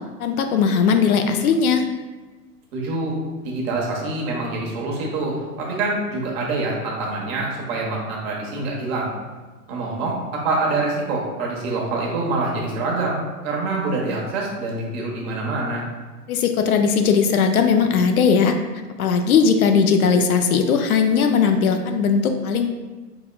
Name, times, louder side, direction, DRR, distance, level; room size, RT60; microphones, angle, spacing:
voice 1, 0.2-1.8 16.3-18.5 19.0-22.7, left 6 dB, 60° left, 5 dB, 0.5 m, -18 dB
voice 2, 2.7-3.2 3.4-9.1 9.7-13.2 13.4-15.8, right 2 dB, 40° right, -2 dB, 1.1 m, -25 dB
4.4 x 4.0 x 2.2 m, 1.3 s
hypercardioid pair, 115°, 49 cm